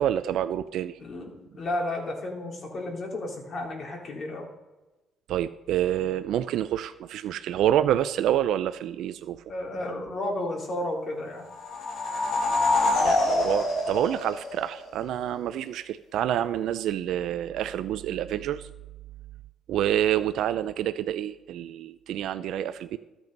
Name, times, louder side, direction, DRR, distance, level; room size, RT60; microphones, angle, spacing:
voice 1, 0.0-1.0 5.3-9.4 13.0-18.7 19.7-23.0, right 11 dB, 75° right, 11 dB, 0.5 m, -27 dB
voice 2, 1.0-4.5 9.5-11.5, left 1 dB, 45° left, 1 dB, 3.0 m, -32 dB
sound 1, 11.5-15.0, left 2 dB, 65° left, 1.9 m, -25 dB
13.5 x 7.0 x 5.4 m, 1.1 s
cardioid pair, 110°, 0 cm